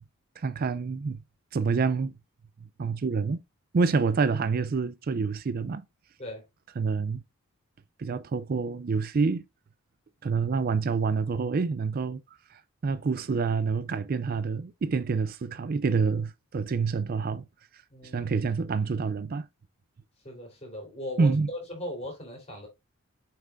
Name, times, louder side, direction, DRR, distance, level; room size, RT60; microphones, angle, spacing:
voice 1, 0.4-1.2 1.5-2.1 2.8-3.4 3.7-5.8 6.8-7.2 8.0-9.4 10.2-12.2 12.5-17.5 18.1-19.4 21.2-21.5, right 4 dB, 40° right, 0.4 m, -27 dB
voice 2, 17.9-18.3 20.2-22.7, left 1 dB, 30° left, 3.7 m, -38 dB
7.3 x 5.7 x 2.5 m
head